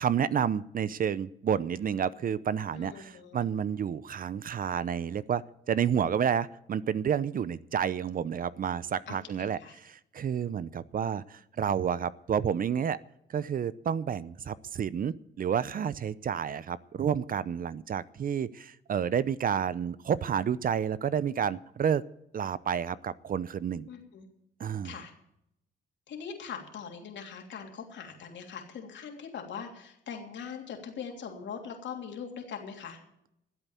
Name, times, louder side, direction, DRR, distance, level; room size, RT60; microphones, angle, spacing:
voice 1, 0.0-13.0 13.3-22.0 22.3-23.9 24.6-24.9, right 8 dB, 45° right, 18 dB, 0.6 m, -30 dB
voice 2, 2.7-3.4 9.1-9.8 23.9-24.3 24.8-25.1 26.1-33.0, left 6 dB, 65° left, 2 dB, 3.2 m, -41 dB
13.5 x 8.1 x 9.1 m, 0.79 s
cardioid pair, 90°, 20 cm